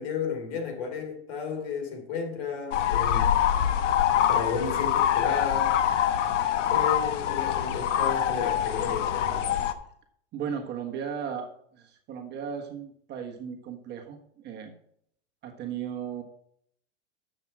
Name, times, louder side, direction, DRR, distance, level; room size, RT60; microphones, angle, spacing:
voice 1, 0.0-3.4 4.1-5.8 6.7-9.5, left 6 dB, 55° left, 5 dB, 3.1 m, -33 dB
sound 1, 2.7-9.7, left 10 dB, 90° left, 1.1 m, -25 dB
voice 2, 10.3-14.8 15.4-16.2, right 7 dB, 30° right, 3 dB, 1.5 m, -36 dB
10.5 x 7.5 x 4.8 m, 0.66 s
supercardioid pair, 140°, 36 cm